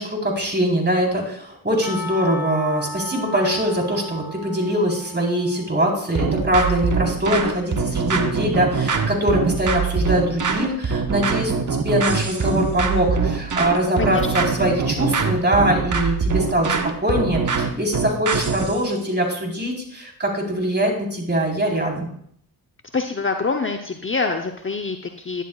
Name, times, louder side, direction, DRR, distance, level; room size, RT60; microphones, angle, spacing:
voice 1, 0.0-22.1, equal, 25° right, 0 dB, 4.1 m, -22 dB
Percussion / Church bell, 1.8-6.2, left 1 dB, 5° right, 4.0 m, -35 dB
sound 1, 6.2-18.8, right 5 dB, 45° right, 1.2 m, -23 dB
voice 2, 14.0-14.3 22.9-25.4, left 4 dB, 30° left, 4 dB, 0.9 m, -25 dB
11.5 x 10.5 x 2.4 m, 0.68 s
supercardioid pair, 45°, 44 cm